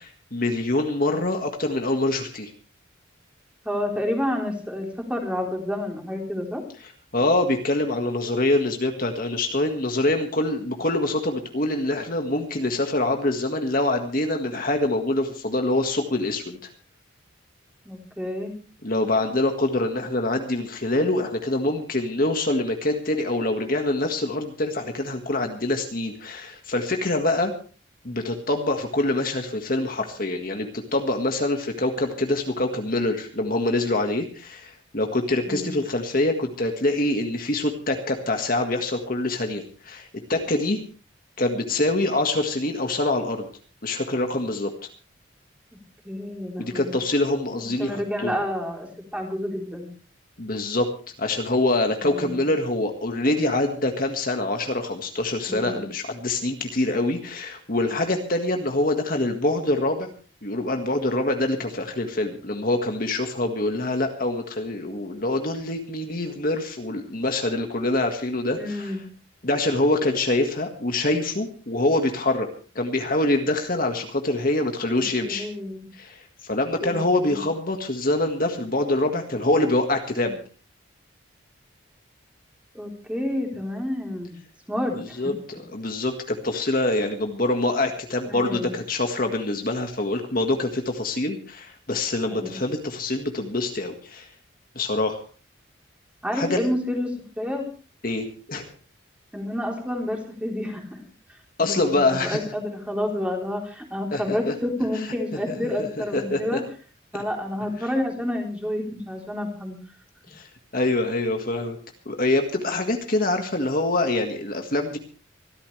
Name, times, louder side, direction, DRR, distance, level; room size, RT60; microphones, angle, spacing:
voice 1, 0.0-2.5 7.1-16.7 18.8-27.5 28.0-40.8 41.4-43.5 43.8-44.7 46.6-48.3 50.4-50.9 51.2-60.1 60.4-68.9 69.4-72.5 72.7-75.5 75.9-80.4 84.9-94.3 94.7-95.2 96.3-96.7 98.0-98.7 101.6-102.4 104.1-104.5 105.8-105.9 106.1-106.6 110.3-110.5 110.7-111.8 112.0-115.0, left 2 dB, 45° left, 4 dB, 1.7 m, -25 dB
voice 2, 3.7-6.6 17.9-18.5 35.5-35.7 46.0-47.0 47.6-49.9 52.0-52.4 55.5-55.9 68.6-69.1 75.2-75.9 76.8-77.4 82.7-84.4 84.7-85.3 88.3-88.7 92.3-92.6 96.2-97.6 99.3-101.0 101.6-106.6 107.1-109.8, left 1 dB, 5° right, 0 dB, 3.7 m, -29 dB
24.5 x 13.0 x 3.3 m, 0.38 s
head